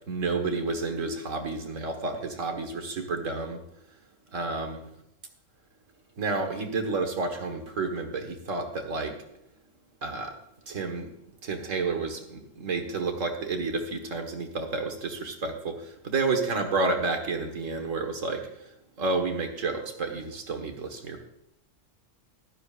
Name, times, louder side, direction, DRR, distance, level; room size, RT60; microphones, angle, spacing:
voice 1, 0.1-3.6 4.3-4.8 6.2-9.2 10.0-10.3 10.7-11.1 11.4-18.5 19.0-21.2, right 3 dB, 80° right, 4 dB, 1.8 m, -30 dB
15.5 x 12.0 x 2.4 m, 0.80 s
omnidirectional pair, 1.3 m